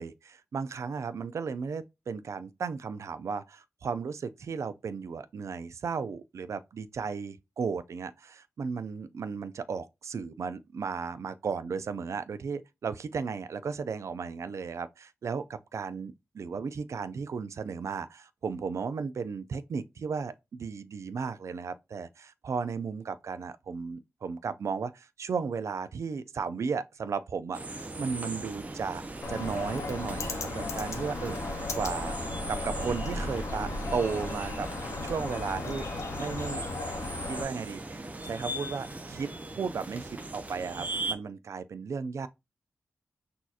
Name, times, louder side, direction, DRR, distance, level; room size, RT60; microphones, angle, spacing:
voice 1, 0.0-29.0 29.3-32.2 32.5-34.7 35.0-35.9 36.2-36.6 37.2-42.3, right 5 dB, 70° right, 0.4 m, -35 dB
sound 1, 27.5-41.1, right 2 dB, 30° right, 0.6 m, -38 dB
Bird, 29.2-37.4, left 4 dB, 70° left, 0.7 m, -37 dB
6.2 x 2.8 x 2.4 m
wide cardioid pair, 110°, 5 cm